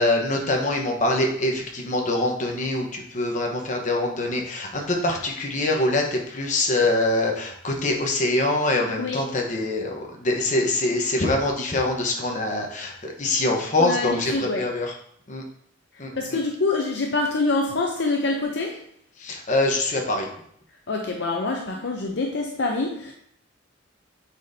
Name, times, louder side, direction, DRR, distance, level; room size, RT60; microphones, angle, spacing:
voice 1, 0.0-14.9 15.3-15.4 16.0-16.4 19.2-20.3, left 2 dB, 40° left, 1 dB, 1.1 m, -24 dB
voice 2, 13.8-14.6 16.2-18.8 20.9-23.1, left 3 dB, 60° left, 1 dB, 0.6 m, -25 dB
8.1 x 4.3 x 2.7 m, 0.66 s
head